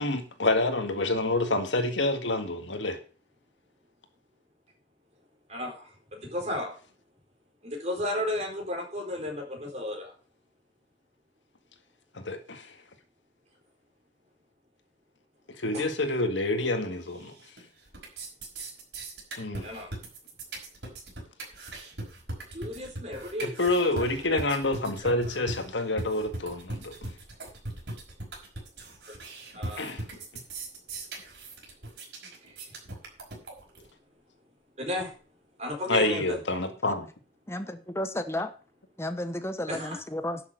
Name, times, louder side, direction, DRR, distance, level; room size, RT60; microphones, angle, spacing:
voice 1, 0.0-3.0 12.1-12.7 15.6-17.3 19.4-19.6 23.4-26.9 29.8-30.0 35.9-37.1, left 2 dB, 80° left, 1.9 m, -27 dB
voice 2, 5.5-6.8 7.6-10.1 15.7-15.8 19.6-19.9 22.5-23.5 24.0-24.1 24.3-24.4 25.0-25.1 29.5-29.9 32.4-32.5 34.8-35.1 35.6-36.4 39.7-40.0, left 1 dB, 35° right, 4.3 m, -34 dB
sound 1, 17.1-17.6 17.9-33.9, right 2 dB, 65° right, 5.4 m, -39 dB
voice 3, 37.5-38.5 39.0-40.4, left 1 dB, 15° left, 0.9 m, -32 dB
11.0 x 7.1 x 6.7 m
head